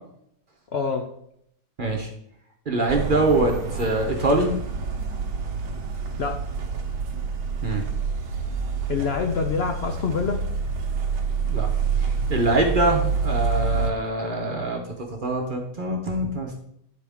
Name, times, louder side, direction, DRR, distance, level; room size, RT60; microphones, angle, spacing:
voice 1, 0.7-1.1 6.2-6.5 8.9-10.5, left 5 dB, 70° left, 4 dB, 0.6 m, -26 dB
voice 2, 1.8-2.1 2.7-4.5 7.6-7.8 11.5-11.7 12.0-16.6, right 2 dB, 40° right, 0 dB, 0.9 m, -24 dB
sound 1, 2.9-13.9, right 5 dB, 90° right, 1.6 m, -27 dB
10.5 x 4.3 x 3.5 m, 0.74 s
omnidirectional pair, 1.8 m